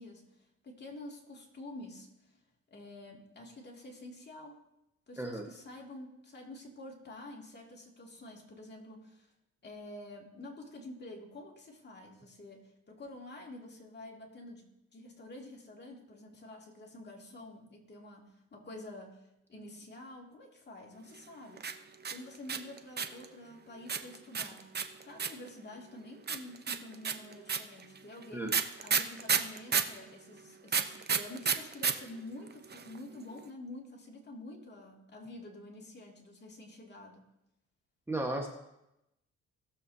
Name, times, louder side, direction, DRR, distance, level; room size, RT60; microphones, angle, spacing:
voice 1, 0.0-2.4 2.7-4.6 5.1-9.3 9.6-21.7 22.1-24.7 25.0-28.6 28.8-37.2, left 1 dB, 35° left, -1 dB, 2.5 m, -48 dB
sound 1, 21.6-23.2 23.9-25.5 26.3-30.0 30.7-31.9 32.2-32.3 32.5-33.0, right 6 dB, 35° right, 0.8 m, -30 dB
voice 2, 38.1-38.5, right 1 dB, 10° right, 0 dB, 1.3 m, -34 dB
18.5 x 7.2 x 2.8 m, 0.87 s
cardioid pair, 90°, 30 cm